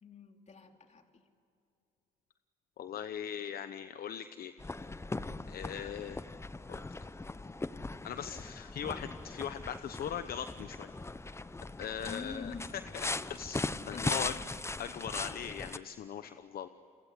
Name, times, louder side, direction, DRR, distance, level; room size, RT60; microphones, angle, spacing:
voice 1, 0.0-1.2 5.8-6.0 12.1-12.9 13.9-14.4, left 5 dB, 45° left, 4 dB, 3.3 m, -46 dB
voice 2, 2.8-4.5 5.5-6.2 6.7-6.8 8.0-10.9 11.8-12.5 12.9-14.3 14.8-16.7, left 9 dB, 65° left, 11 dB, 0.9 m, -40 dB
sound 1, 4.6-15.8, left 2 dB, 15° left, 0.8 m, -39 dB
29.5 x 23.0 x 8.2 m, 2.6 s
cardioid pair, 85°, 16 cm